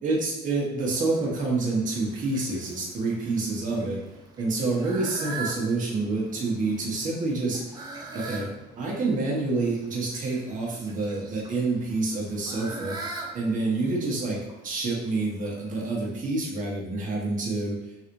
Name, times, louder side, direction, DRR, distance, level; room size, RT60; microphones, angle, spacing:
voice 1, 0.0-4.0 4.4-7.6 8.1-8.5 8.8-12.9 13.3-14.4 14.6-17.8, right 3 dB, 50° right, -3 dB, 1.2 m, -27 dB
Fowl, 0.8-16.2, right 3 dB, 25° right, 0.7 m, -43 dB
4.0 x 3.0 x 2.6 m, 0.94 s
cardioid pair, 110°, 17 cm